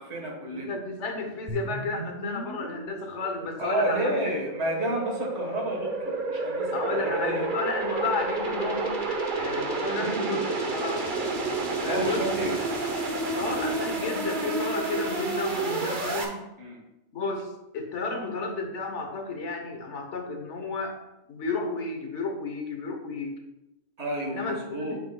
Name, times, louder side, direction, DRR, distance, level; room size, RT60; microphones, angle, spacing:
voice 1, 0.0-0.8 3.6-7.5 9.9-10.5 11.8-12.6 15.6-15.9 16.6-16.8 24.0-25.0, right 1 dB, 60° right, 1 dB, 1.7 m, -31 dB
voice 2, 0.5-4.4 6.7-11.1 11.8-12.3 13.4-16.4 17.1-21.0 21.3-23.4 24.2-25.0, left 3 dB, 65° left, 3 dB, 1.3 m, -32 dB
sound 1, 1.5-16.2, right 3 dB, 45° right, 1.0 m, -30 dB
8.3 x 7.0 x 2.3 m, 0.92 s
omnidirectional pair, 1.3 m